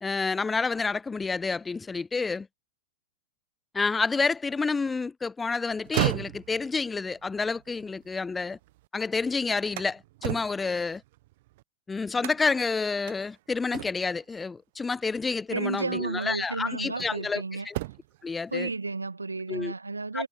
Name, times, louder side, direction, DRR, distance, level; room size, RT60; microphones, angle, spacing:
voice 1, 0.0-2.5 3.7-8.6 8.9-11.0 11.9-17.7 18.2-18.7 19.5-19.7 20.1-20.2, left 4 dB, 15° left, 0.9 m, -29 dB
sound 1, 5.7-8.9 9.3-11.6 12.2-12.7 13.1-13.2 13.7-14.2 15.5-15.6 16.2-17.3 17.6-18.2, right 19 dB, 55° right, 1.0 m, -35 dB
voice 2, 15.5-17.7 18.5-20.3, right 3 dB, 85° right, 1.4 m, -32 dB
figure-of-eight pair, 95°, 0 cm